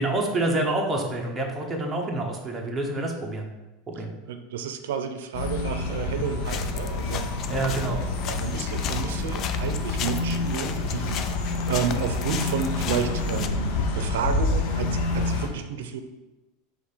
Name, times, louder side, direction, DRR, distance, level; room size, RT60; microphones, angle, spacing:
voice 1, 0.0-3.5 3.9-4.1 7.5-8.0, right 2 dB, 10° right, -1 dB, 0.9 m, -27 dB
voice 2, 4.3-7.3 8.0-16.0, right 7 dB, 85° right, 8 dB, 0.6 m, -31 dB
sound 1, 5.3-15.5, left 3 dB, 55° left, 0.9 m, -28 dB
sound 2, 6.4-13.5, left 8 dB, 30° left, 0.4 m, -36 dB
5.0 x 3.7 x 5.6 m, 1.0 s
supercardioid pair, 165°, 0 cm